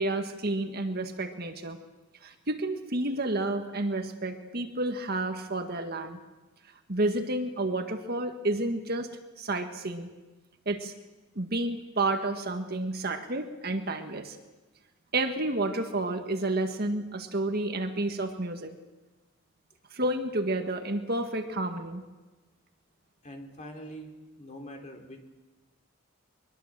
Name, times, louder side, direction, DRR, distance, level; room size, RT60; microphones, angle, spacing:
voice 1, 0.0-1.8 2.2-6.2 6.9-9.1 9.4-10.1 10.7-10.9 11.4-14.4 15.1-18.7 19.9-22.0, right 2 dB, 45° right, 6 dB, 1.8 m, -30 dB
voice 2, 23.2-24.1 24.4-25.2, equal, 35° left, 3 dB, 3.5 m, -43 dB
23.0 x 21.5 x 7.6 m, 1.2 s
head